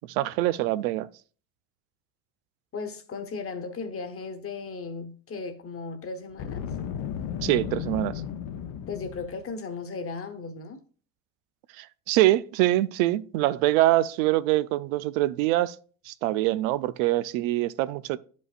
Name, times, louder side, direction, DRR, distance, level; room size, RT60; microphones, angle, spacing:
voice 1, 0.1-1.1 7.4-8.2 11.8-15.8 16.1-18.2, right 16 dB, 90° right, 0.5 m, -24 dB
voice 2, 2.7-6.6 8.9-10.8, left 4 dB, 35° left, 1.2 m, -36 dB
Boom, 6.3-9.4, left 8 dB, 60° left, 0.8 m, -34 dB
11.0 x 5.3 x 2.5 m
supercardioid pair, 105°, 40 cm